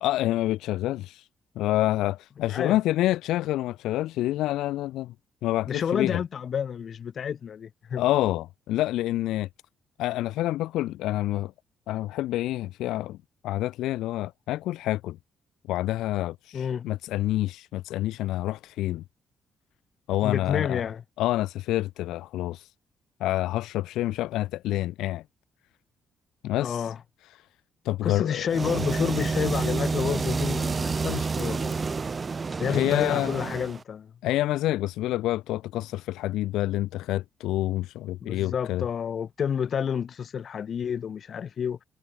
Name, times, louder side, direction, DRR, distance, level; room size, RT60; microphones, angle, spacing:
voice 1, 0.0-1.3 1.6-5.1 5.4-6.2 8.0-9.5 10.0-11.5 11.9-13.2 13.4-15.2 15.7-19.0 20.1-20.8 21.2-22.7 23.2-25.2 26.4-26.9 27.8-28.5 32.7-33.5 34.2-38.8, left 15 dB, 90° left, 0.9 m, -27 dB
voice 2, 5.7-8.1 16.5-16.9 20.2-21.0 26.6-27.0 28.0-31.8 32.6-34.1 38.2-41.8, left 7 dB, 55° left, 1.2 m, -29 dB
sound 1, 28.5-33.8, right 4 dB, 35° right, 1.4 m, -29 dB
cardioid pair, 90°, 0 cm